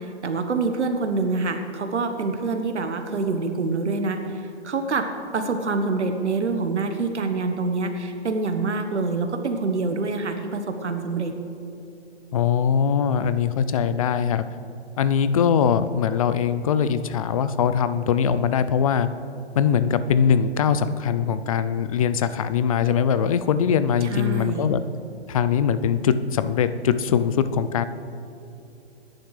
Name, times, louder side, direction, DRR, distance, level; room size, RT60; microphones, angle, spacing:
voice 1, 0.2-4.4 4.6-11.3 24.0-24.7, right 3 dB, 85° right, 6 dB, 1.3 m, -26 dB
voice 2, 12.3-14.4 15.0-19.1 19.6-24.8 25.3-27.8, left 7 dB, 35° left, 12 dB, 0.4 m, -21 dB
20.5 x 10.5 x 3.3 m, 2.7 s
hypercardioid pair, 145°, 34 cm